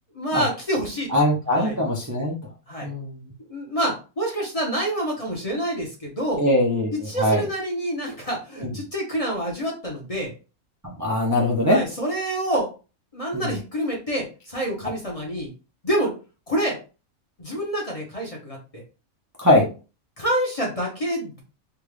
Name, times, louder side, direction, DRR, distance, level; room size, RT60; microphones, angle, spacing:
voice 1, 0.1-1.1 1.5-1.8 2.7-2.9 3.5-6.4 7.1-10.3 11.6-12.7 13.1-15.5 15.8-16.1 16.5-16.8 17.4-18.8 20.2-21.4, right 1 dB, 30° left, -2 dB, 0.8 m, -27 dB
voice 2, 1.1-2.3 2.8-3.3 6.4-7.5 8.6-8.7 10.8-11.8 13.3-13.5 19.4-19.6, left 1 dB, 20° right, -4 dB, 0.5 m, -21 dB
3.5 x 2.4 x 3.2 m, 0.33 s
omnidirectional pair, 1.5 m